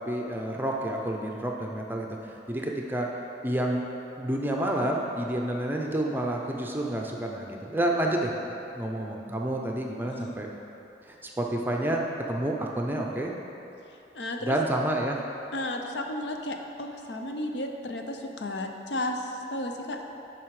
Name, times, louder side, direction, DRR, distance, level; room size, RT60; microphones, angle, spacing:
voice 1, 0.0-3.1 3.4-3.8 4.2-10.5 11.1-13.3 14.4-15.2, right 1 dB, 10° right, 0 dB, 0.5 m, -29 dB
voice 2, 14.1-14.6 15.5-20.1, left 1 dB, 85° left, 3 dB, 0.7 m, -33 dB
9.4 x 4.8 x 4.8 m, 2.9 s
head